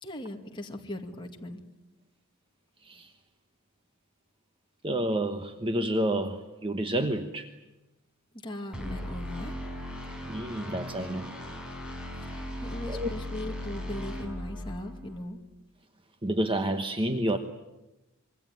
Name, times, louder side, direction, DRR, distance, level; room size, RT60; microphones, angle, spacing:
voice 1, 0.0-1.6 8.4-9.6 12.2-15.4, left 1 dB, 20° left, 2 dB, 2.1 m, -39 dB
voice 2, 4.8-7.5 10.3-11.3 12.9-13.1 16.2-17.4, right 1 dB, 25° right, 7 dB, 1.1 m, -29 dB
sound 1, 8.7-15.2, equal, 5° right, 5.7 m, -38 dB
26.0 x 23.0 x 9.4 m, 1.0 s
head